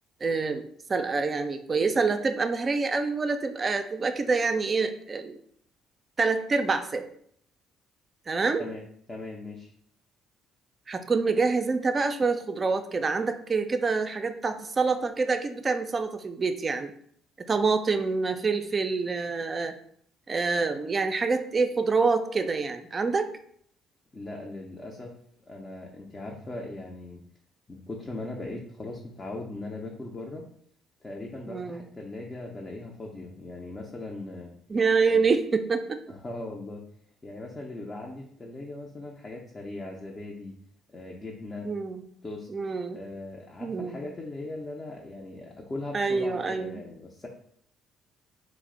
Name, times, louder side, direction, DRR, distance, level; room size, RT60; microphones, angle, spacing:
voice 1, 0.2-0.6 0.9-5.4 6.2-7.1 8.3-8.6 10.9-16.9 17.5-19.7 20.3-23.3 31.5-31.8 34.7-36.0 41.6-42.0 42.5-43.0 43.6-44.0 45.9-46.8, right 4 dB, 35° right, 8 dB, 0.3 m, -26 dB
voice 2, 9.1-9.7 24.1-25.2 25.5-27.2 27.7-30.5 31.0-34.5 35.1-35.2 36.1-36.8 37.2-40.5 40.9-41.7 42.2-42.5 42.8-47.3, left 2 dB, 30° left, -1 dB, 0.5 m, -39 dB
2.5 x 2.0 x 3.7 m, 0.65 s
hypercardioid pair, 60°, 0 cm